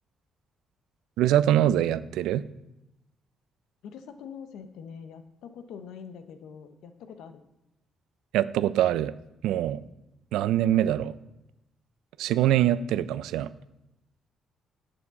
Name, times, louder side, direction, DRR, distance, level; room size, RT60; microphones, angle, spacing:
voice 1, 1.2-2.4 8.3-9.1 9.4-9.8 10.3-11.1 12.2-13.5, right 12 dB, 90° right, 16 dB, 0.3 m, -23 dB
voice 2, 3.8-7.4, left 7 dB, 85° left, 9 dB, 0.7 m, -44 dB
11.0 x 6.7 x 3.7 m, 0.90 s
cardioid pair, 90°, 0 cm